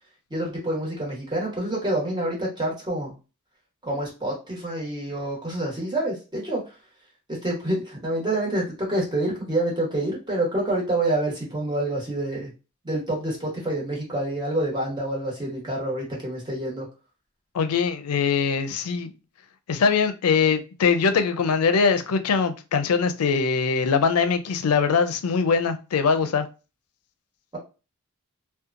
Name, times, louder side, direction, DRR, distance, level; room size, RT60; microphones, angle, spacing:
voice 1, 0.3-3.1 3.8-6.6 7.3-12.5 12.8-16.8, right 1 dB, 20° right, 1.1 m, -27 dB
voice 2, 17.5-19.1 19.7-26.5, left 5 dB, 85° left, 0.4 m, -22 dB
2.8 x 2.2 x 2.5 m
head